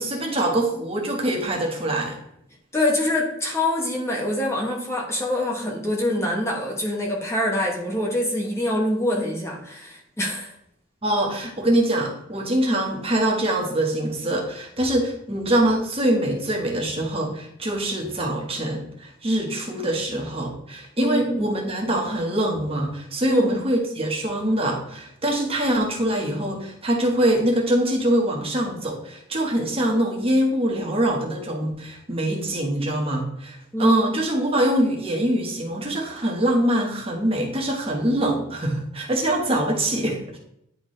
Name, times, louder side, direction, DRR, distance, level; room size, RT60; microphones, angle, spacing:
voice 1, 0.0-2.2 11.0-40.4, right 1 dB, 30° right, -1 dB, 1.3 m, -24 dB
voice 2, 2.7-10.5 21.0-21.5 23.3-23.5 33.7-34.1, left 1 dB, 15° left, -2 dB, 1.0 m, -25 dB
10.0 x 3.5 x 3.2 m, 0.75 s
head